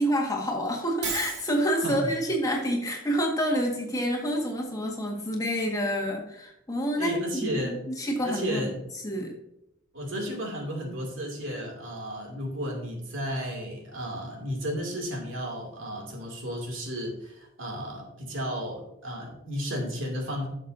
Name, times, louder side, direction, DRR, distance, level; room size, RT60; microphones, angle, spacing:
voice 1, 0.0-7.1 7.5-7.6 8.0-8.6 9.0-9.4, equal, 20° left, 0 dB, 1.7 m, -28 dB
Shatter, 1.0-1.6, right 4 dB, 60° right, 2.6 m, -32 dB
voice 2, 7.0-7.8 8.2-8.9 9.9-20.5, equal, 80° right, 1 dB, 2.6 m, -33 dB
11.5 x 6.6 x 2.7 m, 0.81 s
head